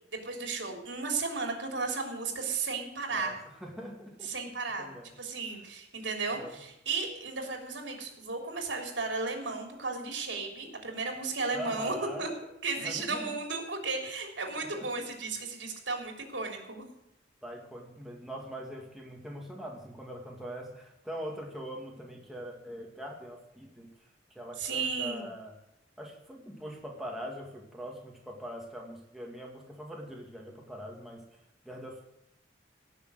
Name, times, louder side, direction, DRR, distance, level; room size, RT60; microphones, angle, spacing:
voice 1, 0.1-3.3 4.2-4.9 5.2-12.3 12.6-16.8 24.6-25.3, right 4 dB, 80° right, 2 dB, 3.4 m, -34 dB
voice 2, 3.1-4.3 4.8-5.1 6.3-6.6 11.5-12.3 12.8-13.3 14.6-14.9 17.4-25.5 26.0-31.3 31.6-32.1, equal, ahead, -1 dB, 2.2 m, -42 dB
17.0 x 6.8 x 7.9 m, 0.84 s
head